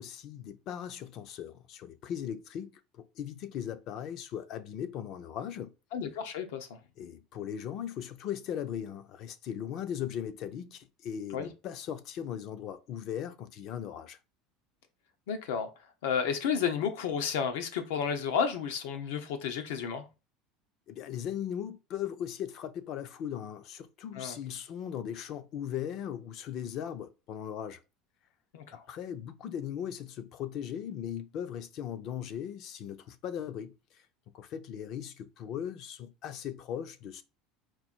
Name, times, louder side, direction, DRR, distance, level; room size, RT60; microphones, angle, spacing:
voice 1, 0.0-5.7 7.0-14.2 20.9-27.8 28.7-34.1 34.3-37.2, left 9 dB, 40° left, 0.4 m, -38 dB
voice 2, 5.9-6.7 11.3-11.5 15.3-15.7 16.0-20.0 24.1-24.4 28.5-28.8, left 7 dB, 85° left, 0.9 m, -31 dB
4.4 x 2.6 x 4.3 m
cardioid pair, 175°, 0 cm